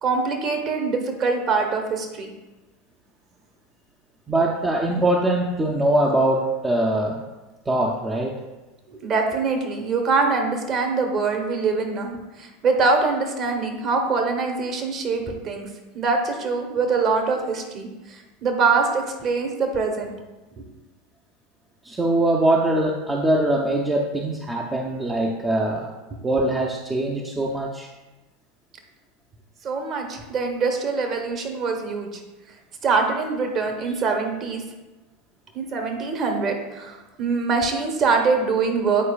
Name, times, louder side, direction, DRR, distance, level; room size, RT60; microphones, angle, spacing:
voice 1, 0.0-2.3 8.9-15.7 15.9-20.1 20.6-20.7 29.6-32.2 32.8-34.6 35.5-39.1, right 4 dB, 40° right, 3 dB, 1.1 m, -24 dB
voice 2, 4.3-7.2 7.7-8.3 21.8-25.9 26.2-27.9, right 1 dB, 15° right, -1 dB, 0.6 m, -22 dB
8.4 x 4.6 x 2.4 m, 1.1 s
figure-of-eight pair, 80°, 0 cm